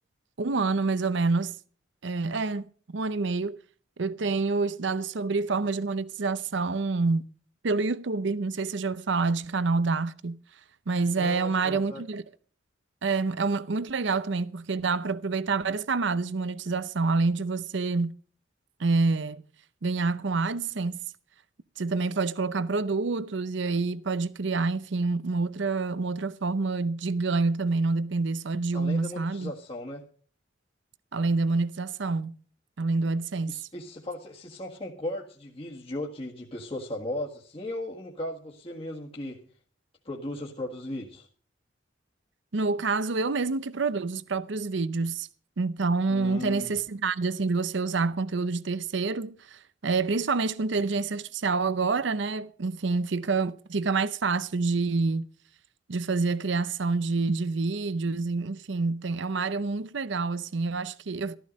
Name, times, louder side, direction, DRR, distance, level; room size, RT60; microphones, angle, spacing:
voice 1, 0.4-1.6 2.0-3.6 4.0-7.3 7.6-10.4 10.9-12.2 13.0-18.1 18.8-19.4 19.8-21.0 21.8-29.5 31.1-32.4 32.8-33.6 42.5-45.3 45.6-55.3 55.9-61.4, right 3 dB, 65° right, 0.7 m, -27 dB
voice 2, 11.1-12.0 28.7-30.0 33.5-39.4 40.1-41.3 46.1-46.8, left 1 dB, 30° left, 1.7 m, -37 dB
14.0 x 14.0 x 5.2 m
head